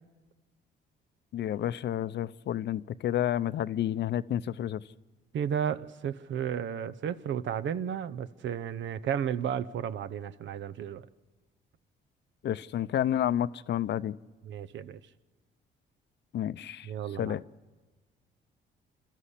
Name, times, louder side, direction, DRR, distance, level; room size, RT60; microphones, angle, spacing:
voice 1, 1.3-4.8 12.4-14.2 16.3-16.9 17.2-17.4, left 11 dB, 60° left, 0.6 m, -30 dB
voice 2, 5.3-11.1 14.5-15.0 16.8-17.3, right 8 dB, 70° right, 0.8 m, -33 dB
27.5 x 13.0 x 8.3 m
cardioid pair, 90°, 20 cm